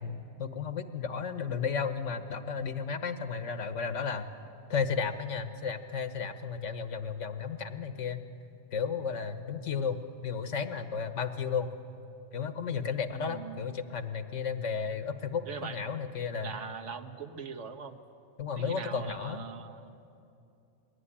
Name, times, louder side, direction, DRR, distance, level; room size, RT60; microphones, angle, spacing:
voice 1, 0.0-4.3 4.7-8.2 8.7-11.7 12.3-16.5 18.4-19.4, left 6 dB, 80° left, 9 dB, 1.4 m, -33 dB
voice 2, 13.1-13.6 15.4-15.8 16.4-18.0 18.5-19.9, right 6 dB, 75° right, 7 dB, 1.4 m, -41 dB
21.5 x 17.0 x 10.0 m, 2.6 s
omnidirectional pair, 1.2 m